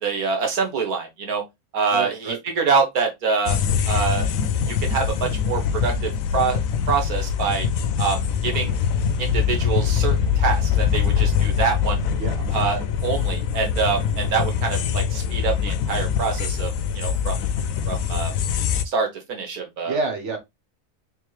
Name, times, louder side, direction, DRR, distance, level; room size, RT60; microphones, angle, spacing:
voice 1, 0.0-1.4 1.7-2.1 2.6-3.6 3.9-4.3 4.8-6.6 6.9-7.7 8.0-8.8 9.2-12.0 12.5-17.4 17.9-18.3 18.9-20.0, right 5 dB, 80° right, 1.7 m, -25 dB
voice 2, 1.9-2.4 12.2-12.4 19.8-20.4, right 4 dB, 55° right, 1.3 m, -27 dB
sound 1, 3.5-18.8, left 7 dB, 70° left, 1.0 m, -23 dB
3.6 x 3.2 x 3.2 m
omnidirectional pair, 1.5 m